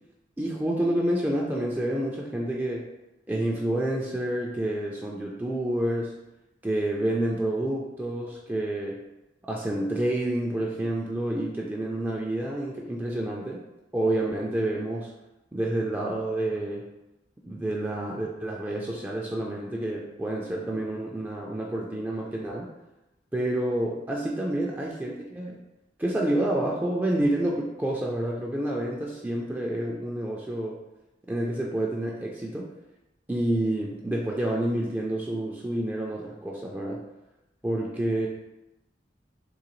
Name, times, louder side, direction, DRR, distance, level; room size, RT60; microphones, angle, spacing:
voice 1, 0.4-2.9 3.3-6.1 6.6-9.0 9.5-13.6 13.9-15.1 15.5-16.9 17.4-22.7 23.3-25.6 26.0-30.8 31.3-32.7 33.3-37.0 37.6-38.3, right 1 dB, 10° right, -2 dB, 0.3 m, -28 dB
3.8 x 2.7 x 3.0 m, 0.96 s
head